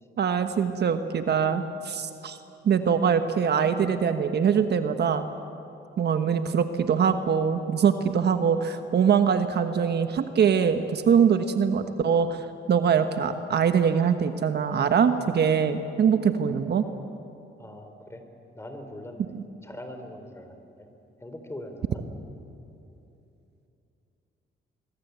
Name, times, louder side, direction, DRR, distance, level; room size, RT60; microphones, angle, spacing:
voice 1, 0.2-2.4 2.6-5.3 6.0-16.8 19.3-19.4, right 7 dB, 55° right, 8 dB, 1.3 m, -23 dB
voice 2, 17.6-18.2 18.5-19.3 19.6-20.9 21.2-22.0, left 1 dB, 15° left, 6 dB, 3.8 m, -41 dB
25.0 x 22.5 x 8.2 m, 2.8 s
cardioid pair, 90°, 20 cm